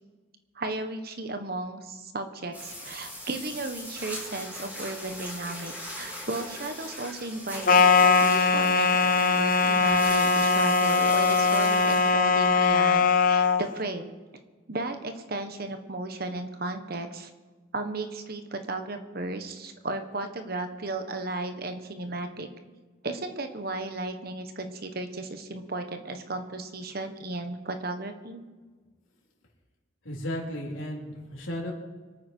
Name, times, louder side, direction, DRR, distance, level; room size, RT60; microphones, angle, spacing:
voice 1, 0.5-14.1 14.7-17.3 17.7-22.5 23.0-28.4, right 2 dB, 50° right, 7 dB, 1.3 m, -35 dB
sound 1, 2.5-12.9, equal, 10° right, 3.5 m, -40 dB
sound 2, 7.7-13.6, left 4 dB, 45° left, 0.8 m, -21 dB
voice 2, 30.0-31.7, equal, 75° left, -2 dB, 3.9 m, -34 dB
25.5 x 9.3 x 4.6 m, 1.4 s
head